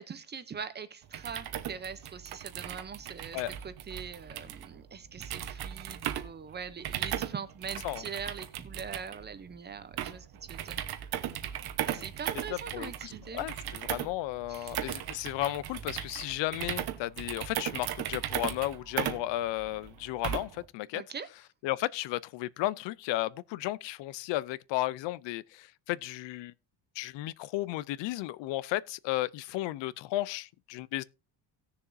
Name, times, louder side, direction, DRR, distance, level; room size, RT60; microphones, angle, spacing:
voice 1, 0.0-10.8 11.9-13.5 14.5-14.8 20.9-21.3, right 6 dB, 25° right, 0.6 m, -42 dB
sound 1, 1.0-20.7, right 11 dB, 55° right, 1.1 m, -37 dB
voice 2, 12.5-21.0 21.6-26.5 27.0-31.0, left 16 dB, 75° left, 0.6 m, -34 dB
18.0 x 6.9 x 2.6 m
cardioid pair, 180°, 44 cm